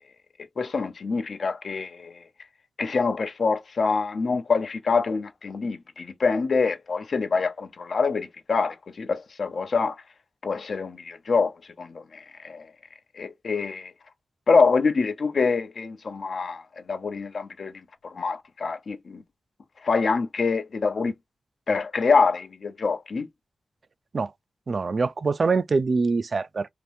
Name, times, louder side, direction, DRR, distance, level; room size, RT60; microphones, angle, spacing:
voice 1, 0.6-2.2 2.8-10.0 10.4-12.7 13.1-13.9 14.5-19.2 19.8-21.1 21.7-23.3, left 4 dB, 65° left, 0.6 m, -25 dB
voice 2, 24.7-26.7, right 4 dB, 60° right, 0.3 m, -24 dB
2.8 x 2.6 x 3.3 m
cardioid pair, 45°, 0 cm